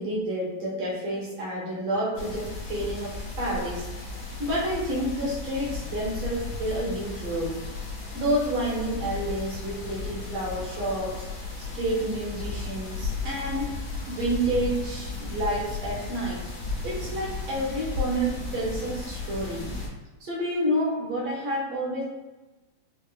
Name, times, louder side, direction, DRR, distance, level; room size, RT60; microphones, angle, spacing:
voice 1, 0.0-3.8 4.4-7.6 8.1-11.3 11.7-13.8 14.1-16.4 16.8-19.7 20.2-22.0, right 1 dB, 75° right, -6 dB, 1.1 m, -29 dB
sound 1, 2.1-19.9, left 3 dB, 70° left, 1.6 m, -35 dB
5.2 x 2.1 x 2.4 m, 1.1 s
omnidirectional pair, 3.8 m